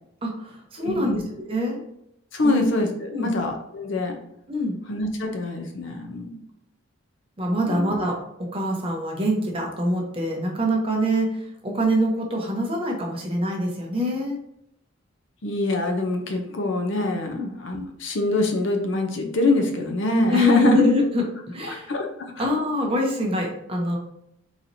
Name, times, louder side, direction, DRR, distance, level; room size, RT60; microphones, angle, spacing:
voice 1, 0.2-1.8 2.4-2.6 3.1-3.3 4.5-4.8 7.4-14.4 17.3-17.5 20.3-21.9 22.4-24.0, equal, 25° right, 0 dB, 0.7 m, -24 dB
voice 2, 0.8-1.3 2.3-4.2 4.9-6.3 7.6-7.9 15.4-20.8 21.7-22.3, left 2 dB, 60° left, 4 dB, 0.6 m, -25 dB
4.0 x 3.0 x 2.6 m, 0.78 s
head